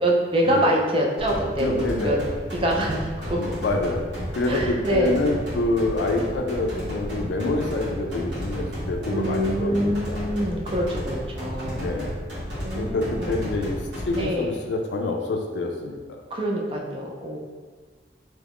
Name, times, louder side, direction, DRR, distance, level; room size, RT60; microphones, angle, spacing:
voice 1, 0.0-2.2 2.6-3.5 4.5-5.1 9.1-11.8 12.6-13.4 14.1-14.5 16.3-17.4, right 1 dB, 30° right, -1 dB, 0.4 m, -25 dB
sound 1, 1.2-14.2, equal, 70° right, 1.4 m, -32 dB
voice 2, 1.6-2.3 3.4-4.0 4.4-10.2 11.8-12.1 12.8-13.8 14.1-16.2, left 2 dB, 70° left, 2 dB, 0.4 m, -26 dB
3.1 x 2.4 x 3.4 m, 1.5 s
head